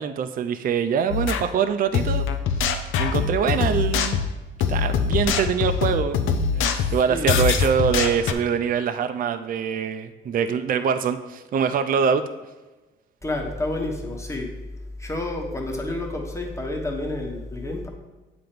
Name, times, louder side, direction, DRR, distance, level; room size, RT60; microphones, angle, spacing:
voice 1, 0.0-2.3 3.0-4.2 4.7-12.3, right 7 dB, 45° right, 9 dB, 0.4 m, -24 dB
sound 1, 1.1-1.4 1.9-8.3, left 6 dB, 85° left, 0.5 m, -23 dB
voice 2, 6.7-7.3 13.2-14.6 15.0-17.9, left 2 dB, 15° left, 1 dB, 1.2 m, -29 dB
7.7 x 3.0 x 5.1 m, 1.1 s
cardioid pair, 90°, 20 cm